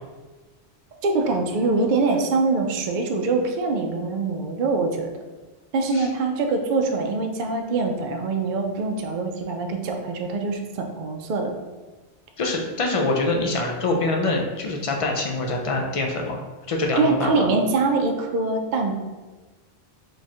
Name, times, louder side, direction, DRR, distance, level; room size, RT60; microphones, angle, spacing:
voice 1, 1.0-5.1 5.7-11.6 17.0-19.0, right 3 dB, 60° right, 3 dB, 0.6 m, -24 dB
voice 2, 12.4-16.4 16.7-17.5, left 2 dB, 60° left, 1 dB, 0.3 m, -24 dB
3.1 x 2.4 x 4.2 m, 1.3 s
omnidirectional pair, 1.1 m